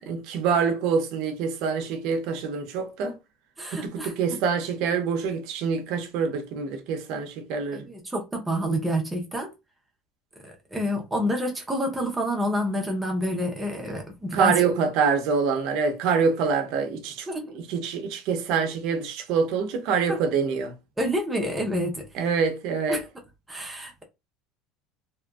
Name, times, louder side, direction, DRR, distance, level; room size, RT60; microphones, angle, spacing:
voice 1, 0.0-3.2 3.7-7.9 14.3-17.3 17.5-20.7 22.2-23.0, right 5 dB, 60° right, 0.6 m, -25 dB
voice 2, 3.6-4.1 7.7-9.5 10.4-14.6 17.3-17.6 20.1-20.2 21.0-22.1 22.9-23.0 23.5-24.0, equal, 10° right, 0.7 m, -28 dB
2.8 x 2.5 x 2.3 m
cardioid pair, 155°, 0 cm